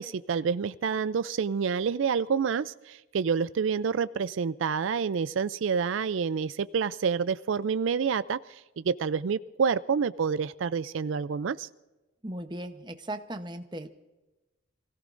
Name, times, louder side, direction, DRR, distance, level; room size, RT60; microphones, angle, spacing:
voice 1, 0.0-11.7, right 6 dB, 70° right, 15 dB, 0.4 m, -28 dB
voice 2, 12.2-13.9, right 1 dB, 20° right, 7 dB, 0.8 m, -37 dB
27.5 x 17.0 x 2.6 m, 1.1 s
head